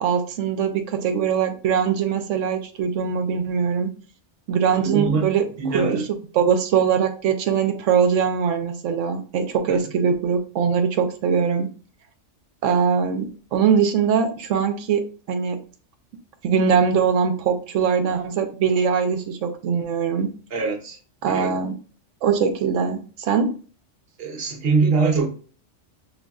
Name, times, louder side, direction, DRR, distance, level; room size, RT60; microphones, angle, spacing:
voice 1, 0.0-3.9 4.5-5.4 5.7-6.0 6.4-11.7 12.6-15.6 16.4-20.3 21.2-21.7 22.2-23.5, right 6 dB, 80° right, 0.9 m, -22 dB
voice 2, 4.8-5.3 5.6-6.1 9.7-9.8 20.5-21.0 21.3-21.6 24.2-25.3, right 4 dB, 55° right, 0.9 m, -23 dB
6.2 x 2.6 x 2.3 m
omnidirectional pair, 1.3 m